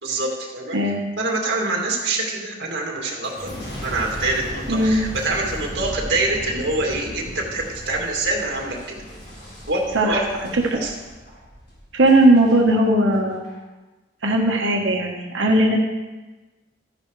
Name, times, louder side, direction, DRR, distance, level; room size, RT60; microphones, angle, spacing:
voice 1, 0.0-0.8 1.2-3.5 3.8-9.0 9.7-10.3 10.7-10.9, right 2 dB, 55° right, -2 dB, 2.5 m, -25 dB
voice 2, 0.7-1.0 4.7-5.0 9.9-10.2 11.9-13.5 14.2-15.8, right 1 dB, 80° right, 0 dB, 1.3 m, -18 dB
Boom, 3.2-12.6 13.1-13.6, equal, 60° left, 4.2 m, -36 dB
13.5 x 10.5 x 3.3 m, 1.2 s
head